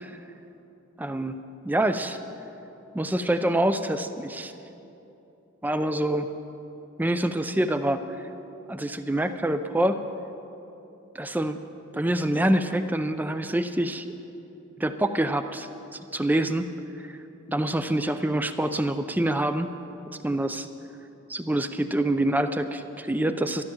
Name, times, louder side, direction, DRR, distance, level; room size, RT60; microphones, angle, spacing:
voice 1, 1.0-1.4 1.6-2.2 2.9-4.5 5.6-6.3 7.0-8.3 8.7-10.0 11.1-11.6 11.9-14.1 14.8-16.7 17.0-17.2 17.5-19.7 20.2-20.7 21.3-23.6, right 1 dB, 10° right, 9 dB, 0.5 m, -26 dB
13.0 x 11.5 x 7.4 m, 2.9 s
head